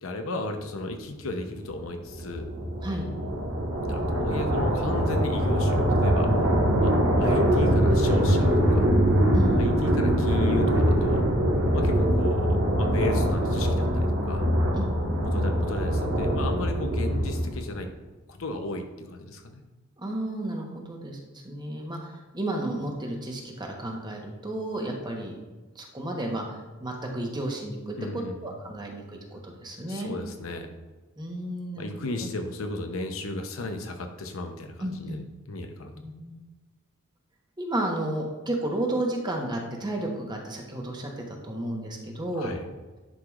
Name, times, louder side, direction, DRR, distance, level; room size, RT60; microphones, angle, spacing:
voice 1, 0.0-2.5 3.7-6.3 6.8-6.9 7.2-8.9 9.6-11.3 11.7-14.5 15.2-17.9 18.3-19.6 28.0-28.4 28.7-28.8 29.3-29.4 29.9-30.7 31.8-35.2 35.5-35.9 42.3-42.7, left 2 dB, 80° left, 5 dB, 0.7 m, -34 dB
sound 1, 1.5-17.8, equal, 75° right, 1.5 m, -23 dB
voice 2, 9.3-9.8 14.7-14.9 20.0-21.2 21.4-25.4 25.7-26.4 26.8-29.0 29.3-30.1 31.2-31.9 32.2-32.3 34.8-35.2 36.0-36.4 37.6-42.5, right 1 dB, 20° right, 1 dB, 1.0 m, -32 dB
10.0 x 4.8 x 2.4 m, 1.2 s
head